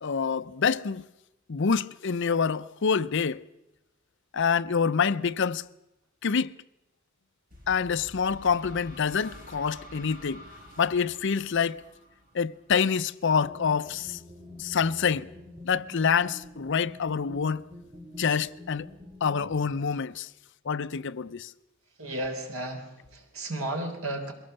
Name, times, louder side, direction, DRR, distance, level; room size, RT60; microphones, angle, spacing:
voice 1, 0.0-1.0 1.5-3.4 4.3-5.6 6.2-6.5 7.7-10.4 10.8-11.8 12.3-14.2 14.6-15.3 15.6-17.6 18.2-18.9 19.2-20.3 20.7-21.5, left 6 dB, 60° left, 0.6 m, -26 dB
sound 1, 7.5-13.1, equal, 45° right, 5.5 m, -49 dB
sound 2, 13.4-19.8, left 1 dB, 20° right, 1.9 m, -46 dB
voice 2, 22.0-24.3, right 1 dB, 90° right, 3.7 m, -33 dB
22.5 x 17.0 x 6.8 m
head